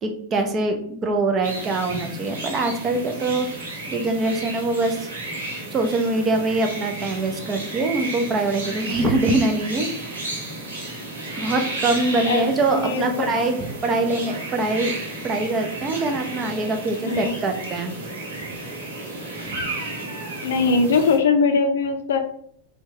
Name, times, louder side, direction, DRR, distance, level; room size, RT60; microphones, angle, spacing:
voice 1, 0.0-3.5 3.9-5.1 5.7-10.3 11.4-15.0 15.2-17.9 19.4-19.6, right 2 dB, 25° right, 5 dB, 0.6 m, -23 dB
sound 1, 1.4-21.2, right 2 dB, 65° right, 1.0 m, -33 dB
voice 2, 12.8-13.5 17.0-17.3 20.4-22.2, left 4 dB, 60° left, 7 dB, 0.5 m, -21 dB
4.3 x 2.3 x 2.9 m, 0.64 s
figure-of-eight pair, 90°, 0 cm